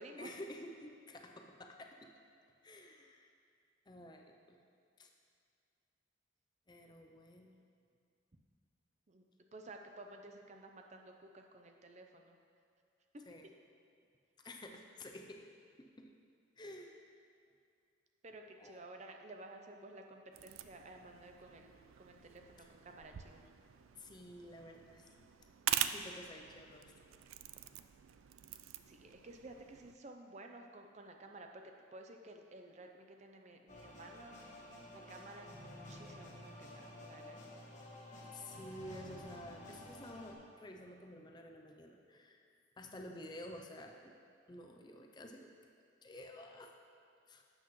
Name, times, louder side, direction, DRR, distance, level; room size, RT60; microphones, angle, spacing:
voice 1, 0.2-2.1 2.6-3.3 3.9-4.6 5.0-5.1 6.7-7.6 13.3-13.5 14.4-15.5 15.8-16.1 16.6-17.1 18.6-18.8 22.6-22.7 23.9-25.3 25.7-26.9 38.3-44.1 44.5-45.5 46.0-46.7 47.3-47.4, left 1 dB, 20° left, 3 dB, 0.5 m, -51 dB
voice 2, 9.5-12.4 18.2-21.7 22.0-23.4 28.9-31.6 31.9-37.6, right 2 dB, 35° right, 3 dB, 0.6 m, -54 dB
sound 1, 20.3-29.9, right 11 dB, 90° right, 0.4 m, -44 dB
sound 2, 33.7-40.3, left 1 dB, 40° left, 1.3 m, -52 dB
12.0 x 7.9 x 3.1 m, 2.3 s
head